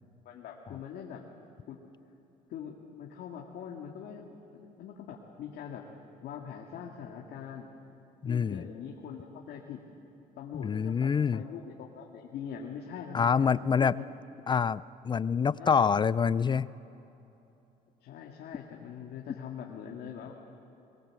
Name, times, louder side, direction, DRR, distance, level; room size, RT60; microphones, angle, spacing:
voice 1, 0.3-1.2 1.7-1.8 2.5-5.9 6.2-7.7 8.2-9.8 10.4-14.1 15.6-15.9 18.0-20.3, left 8 dB, 75° left, -1 dB, 2.1 m, -43 dB
voice 2, 8.2-8.6 10.5-11.4 13.1-14.0 14.5-16.7, left 6 dB, 25° left, 18 dB, 0.4 m, -26 dB
22.5 x 22.0 x 7.7 m, 2.9 s
cardioid pair, 110°, 17 cm